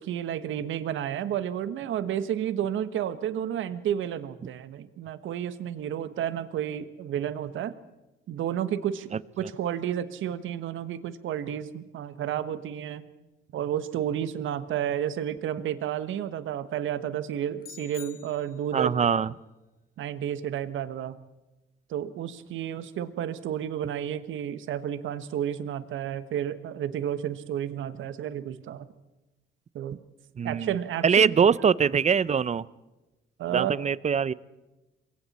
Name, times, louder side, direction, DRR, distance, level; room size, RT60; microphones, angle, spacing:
voice 1, 0.0-7.7 8.3-13.0 13.5-18.9 20.0-21.2 21.9-28.9 29.7-30.0 30.4-31.3 33.4-33.7, right 10 dB, 75° right, 13 dB, 1.3 m, -31 dB
sound 1, 17.6-18.9, left 8 dB, 45° left, 1.4 m, -47 dB
voice 2, 18.7-19.3 30.4-30.7 31.0-32.6 33.5-34.3, right 6 dB, 35° right, 20 dB, 0.6 m, -22 dB
27.5 x 22.5 x 4.3 m, 1.1 s
cardioid pair, 90°, 20 cm